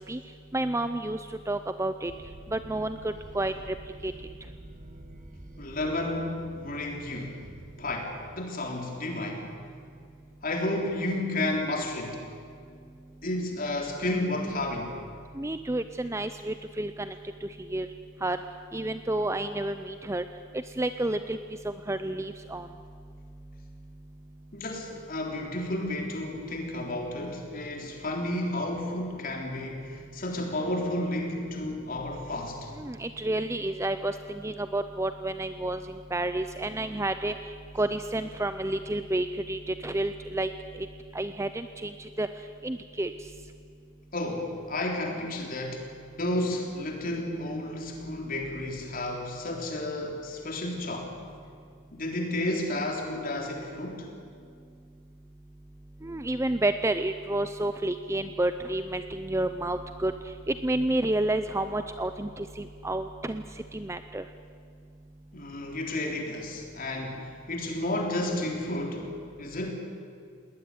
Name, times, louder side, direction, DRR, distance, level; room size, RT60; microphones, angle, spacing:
voice 1, 0.5-1.2 1.5-2.1 2.5-3.5 4.0-4.1 15.4-17.1 17.4-17.9 18.2-18.4 18.7-20.2 20.8-21.4 21.6-22.7 32.8-37.3 37.8-40.5 41.1-41.9 42.2-42.3 42.6-43.1 56.0-60.1 60.5-63.4 63.7-64.2, right 1 dB, 15° right, 10 dB, 0.5 m, -30 dB
sound 1, 2.1-8.0, right 2 dB, 35° right, 1.3 m, -48 dB
voice 2, 5.6-7.4 7.8-9.5 10.4-12.2 13.2-14.9 24.5-32.7 44.1-45.9 46.2-51.2 51.9-54.1 65.3-69.1 69.4-69.7, left 1 dB, 40° left, 2 dB, 3.6 m, -32 dB
19.5 x 19.5 x 9.7 m, 2.3 s
head